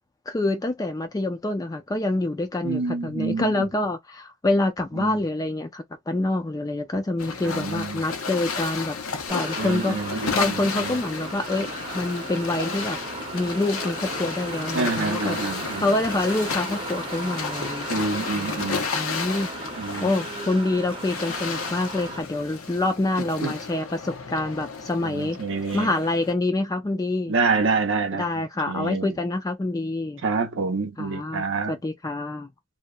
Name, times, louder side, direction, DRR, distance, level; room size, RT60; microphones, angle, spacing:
voice 1, 0.3-9.0 9.3-11.7 11.9-13.0 13.3-15.4 15.8-18.1 18.3-19.5 20.0-25.4 25.7-27.3 28.1-30.2 31.0-32.5, left 2 dB, 15° left, 0.3 m, -26 dB
voice 2, 2.6-3.7 5.0-5.2 7.4-8.0 9.6-11.0 14.7-15.9 17.9-18.9 19.8-20.1 23.4-23.5 25.0-25.9 27.3-28.3 28.7-29.1 30.2-31.7, right 4 dB, 65° right, 0.6 m, -27 dB
sound 1, 7.2-26.3, left 5 dB, 90° left, 0.7 m, -33 dB
sound 2, 9.3-22.2, right 2 dB, 25° right, 0.7 m, -36 dB
2.7 x 2.0 x 2.2 m
head